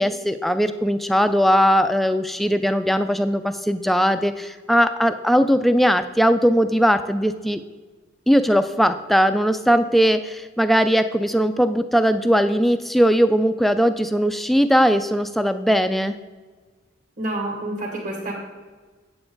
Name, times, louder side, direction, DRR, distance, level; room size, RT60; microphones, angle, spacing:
voice 1, 0.0-7.6 8.3-16.2, equal, ahead, 9 dB, 0.3 m, -19 dB
voice 2, 17.2-18.3, right 1 dB, 40° right, -1 dB, 1.9 m, -28 dB
9.2 x 7.8 x 3.8 m, 1.4 s
head